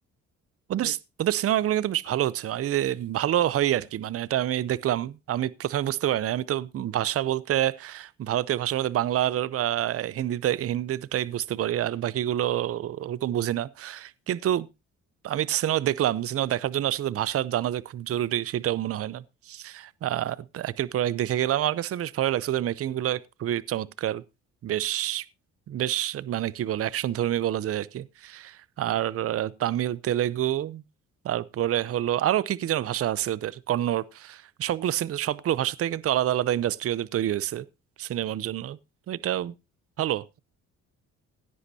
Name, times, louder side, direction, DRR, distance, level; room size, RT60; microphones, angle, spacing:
voice 1, 0.7-14.7 15.2-24.2 24.6-25.3 25.7-30.8 31.2-37.6 38.0-38.8 39.1-39.5 40.0-40.4, right 12 dB, 50° right, 0.6 m, -27 dB
16.5 x 9.7 x 2.7 m
cardioid pair, 90°, 30 cm